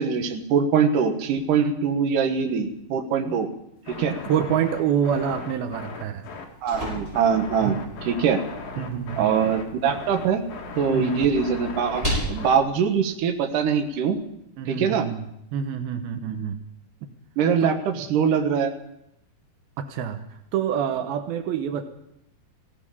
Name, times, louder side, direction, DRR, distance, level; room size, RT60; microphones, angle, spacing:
voice 1, 0.0-3.5 3.9-4.2 6.6-7.8 8.1-8.4 9.2-10.4 10.8-14.2 14.7-15.1 17.4-18.7, right 6 dB, 65° right, 5 dB, 2.8 m, -23 dB
sound 1, 3.8-12.6, left 5 dB, 70° left, 3.5 m, -38 dB
voice 2, 4.2-6.3 7.6-7.8 8.8-9.6 10.9-11.3 14.6-15.3 15.5-16.6 17.6-17.7 19.8-20.2 20.5-21.8, right 8 dB, 85° right, 7 dB, 2.9 m, -27 dB
sound 2, 6.2-14.2, equal, 10° right, 7.1 m, -36 dB
17.0 x 15.0 x 5.5 m, 0.80 s
omnidirectional pair, 4.3 m